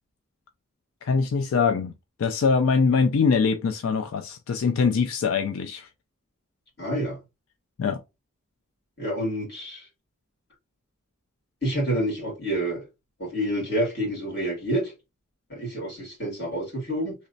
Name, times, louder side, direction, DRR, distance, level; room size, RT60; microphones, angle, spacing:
voice 1, 1.0-1.9 2.2-5.9 7.8-8.0, left 5 dB, 85° left, 0.4 m, -23 dB
voice 2, 6.8-7.2 9.0-9.8 11.6-12.8 13.2-14.9 15.5-17.1, right 1 dB, 50° left, 2.1 m, -28 dB
3.1 x 3.0 x 2.6 m
head